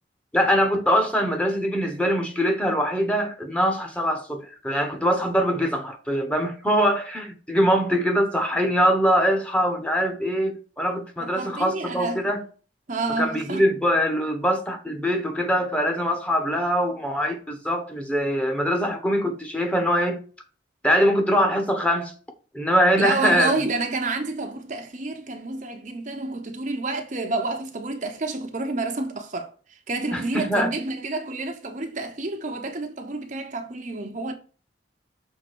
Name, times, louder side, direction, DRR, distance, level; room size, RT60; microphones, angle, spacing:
voice 1, 0.3-12.4 13.2-20.2 20.8-22.1 22.5-23.6 30.1-30.7, equal, 5° left, 1.1 m, -23 dB
voice 2, 11.2-12.3 12.9-13.7 23.0-29.5 29.9-34.3, right 3 dB, 45° right, 0.9 m, -29 dB
6.8 x 3.7 x 6.1 m
head